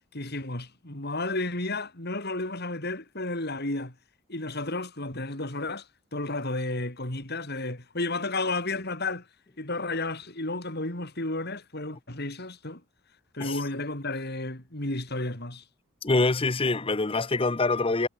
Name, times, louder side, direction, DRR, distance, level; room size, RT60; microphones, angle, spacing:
voice 1, 0.1-4.0 4.3-9.3 9.6-12.8 13.3-15.6, left 2 dB, 50° left, 4.2 m, -32 dB
voice 2, 16.0-18.1, left 3 dB, 25° left, 0.7 m, -25 dB
head